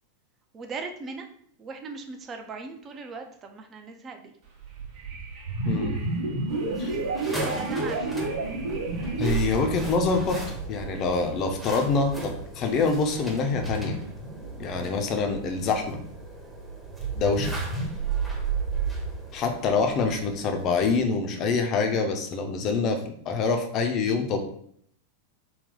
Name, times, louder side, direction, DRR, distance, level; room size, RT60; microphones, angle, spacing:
voice 1, 0.5-1.3 1.6-4.3 6.5-8.2 14.8-15.1 17.2-17.3, right 4 dB, 25° right, 5 dB, 0.5 m, -39 dB
Wind, 4.4-11.1, right 5 dB, 45° right, 0.9 m, -42 dB
sound 1, 5.4-15.6 16.8-19.0, right 4 dB, 65° right, 1.1 m, -31 dB
sound 2, 6.5-21.1, right 1 dB, 5° right, 0.9 m, -40 dB
voice 2, 9.2-10.4 10.7-14.0 14.6-16.0 17.1-17.6 19.3-23.0 23.3-24.4, left 4 dB, 35° left, 5 dB, 0.6 m, -25 dB
4.0 x 2.3 x 3.7 m, 0.65 s
figure-of-eight pair, 90°, 0 cm